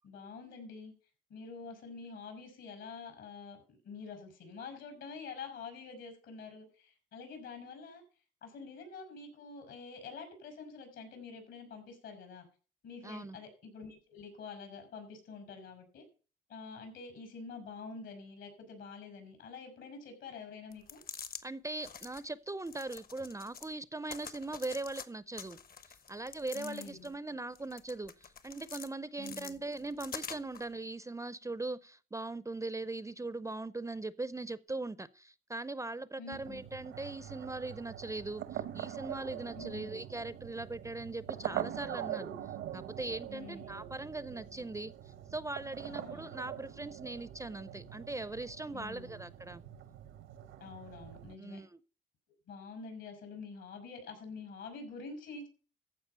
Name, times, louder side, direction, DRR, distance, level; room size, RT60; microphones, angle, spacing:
voice 1, 0.0-0.9 1.3-8.0 8.4-12.5 12.8-16.0 16.5-21.0 26.5-27.1 29.2-29.6 36.2-36.6 39.6-40.0 43.3-43.8 45.9-46.4 48.7-49.3 50.6-51.6 52.5-55.5, left 4 dB, 75° left, 5.8 m, -47 dB
voice 2, 13.0-13.4 21.4-25.6 25.9-42.3 42.7-49.6 51.4-51.8, right 2 dB, 15° right, 0.5 m, -40 dB
sound 1, 20.7-21.4 21.8-22.2 22.7-23.7 24.1-25.1 25.4-27.1 27.6-28.9 29.2-30.7, left 6 dB, 50° left, 1.2 m, -46 dB
sound 2, 36.3-51.4, right 11 dB, 85° right, 1.1 m, -43 dB
14.5 x 5.0 x 6.8 m
cardioid pair, 90°, 20 cm